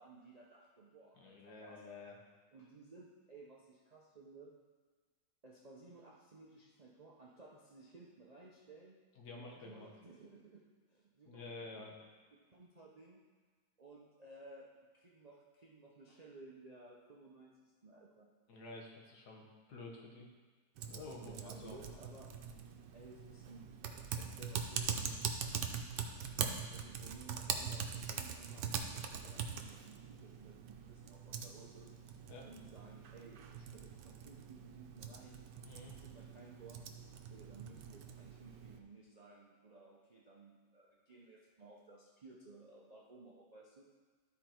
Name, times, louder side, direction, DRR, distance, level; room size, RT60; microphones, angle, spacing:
voice 1, 0.0-2.0 2.5-4.6 5.4-9.0 9.3-12.0 12.3-13.2 13.8-18.3 21.2-22.4 22.9-25.7 26.7-31.9 32.4-35.5 35.9-36.8 37.2-43.8, right 3 dB, 45° right, -3 dB, 0.5 m, -57 dB
voice 2, 1.1-2.2 9.1-9.9 11.2-11.9 18.5-20.3 20.9-21.9 32.3-32.5 35.6-35.9, left 3 dB, 70° left, -1 dB, 1.7 m, -50 dB
Typing, 20.8-38.8, right 7 dB, 80° right, 1.3 m, -43 dB
12.5 x 4.4 x 4.4 m, 1.5 s
omnidirectional pair, 1.9 m